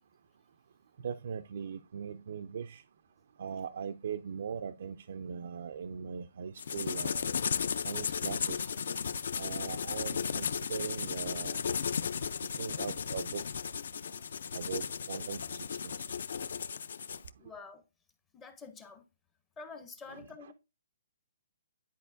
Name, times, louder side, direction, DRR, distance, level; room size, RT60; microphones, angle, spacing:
voice 1, 1.0-2.8 3.4-7.3 7.8-8.7 9.4-11.7 12.6-13.4 14.5-15.9 20.1-20.5, right 7 dB, 55° right, 0.3 m, -40 dB
sound 1, 6.6-17.3, left 6 dB, 60° left, 0.4 m, -35 dB
voice 2, 17.4-17.8 18.3-19.0 19.6-20.5, left 4 dB, 10° left, 0.5 m, -48 dB
10.0 x 4.5 x 2.5 m
hypercardioid pair, 170°, 0 cm